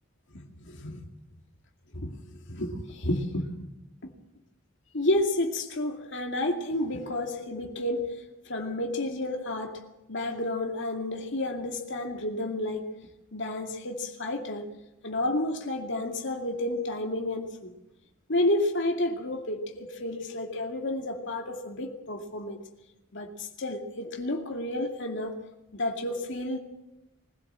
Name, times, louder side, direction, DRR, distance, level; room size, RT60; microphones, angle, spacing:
voice 1, 0.3-1.0 1.9-3.5 4.0-4.1 4.9-8.1 8.5-9.8 10.1-12.9 13.3-14.6 15.0-17.7 18.3-22.6 23.1-25.4 25.7-26.6, left 1 dB, 65° left, 2 dB, 2.4 m, -31 dB
22.0 x 16.0 x 7.5 m, 0.95 s
head